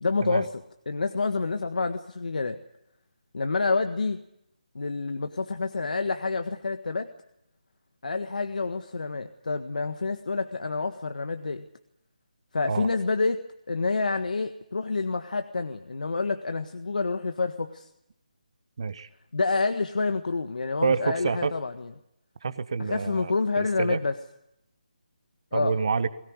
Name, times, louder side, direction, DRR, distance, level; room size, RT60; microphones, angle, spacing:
voice 1, 0.0-2.6 3.3-4.2 4.7-7.1 8.0-11.6 12.5-13.4 13.7-17.9 19.3-21.9 22.8-24.2 25.5-25.7, left 3 dB, 70° left, 7 dB, 1.6 m, -28 dB
voice 2, 18.8-19.1 20.8-21.5 22.4-24.0 25.5-26.1, right 5 dB, 40° right, 13 dB, 1.4 m, -28 dB
22.0 x 18.0 x 9.7 m, 0.81 s
hypercardioid pair, 175°, 5 cm